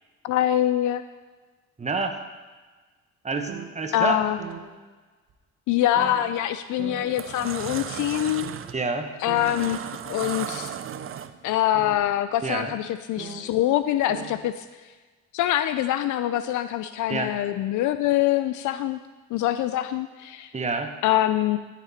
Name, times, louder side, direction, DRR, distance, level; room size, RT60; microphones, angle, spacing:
voice 1, 0.2-1.0 3.9-4.4 5.7-8.5 9.2-9.8 10.1-10.7 11.4-14.6 15.3-19.0 19.3-20.5 21.0-21.6, left 13 dB, 80° left, 11 dB, 0.5 m, -24 dB
voice 2, 1.8-2.2 3.2-4.2 8.7-9.1 12.4-12.7 17.1-17.3 20.5-21.0, right 3 dB, 25° right, 5 dB, 1.1 m, -28 dB
sound 1, 3.5-3.7 4.4-4.6 5.3-5.4 6.0-6.2 6.8-7.1 7.8-7.9 8.4-8.6 9.3-9.6 10.8-11.1 11.7-12.0 13.2-13.4 13.8-13.9 14.1-14.3, right 7 dB, 80° right, 1.7 m, -38 dB
sound 2, 6.2-6.5 6.9-11.6, right 9 dB, 45° right, 0.5 m, -35 dB
13.5 x 6.1 x 4.3 m, 1.3 s
cardioid pair, 90°, 30 cm